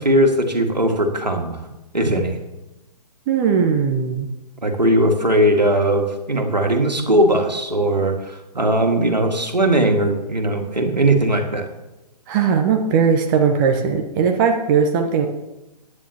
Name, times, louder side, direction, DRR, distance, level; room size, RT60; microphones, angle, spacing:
voice 1, 0.0-1.6 1.9-2.4 4.6-11.7, right 1 dB, 90° right, 3 dB, 2.0 m, -19 dB
voice 2, 3.3-4.3 12.3-15.3, right 6 dB, 30° right, 4 dB, 1.0 m, -18 dB
16.5 x 9.8 x 2.9 m, 1.0 s
figure-of-eight pair, 130°, 21 cm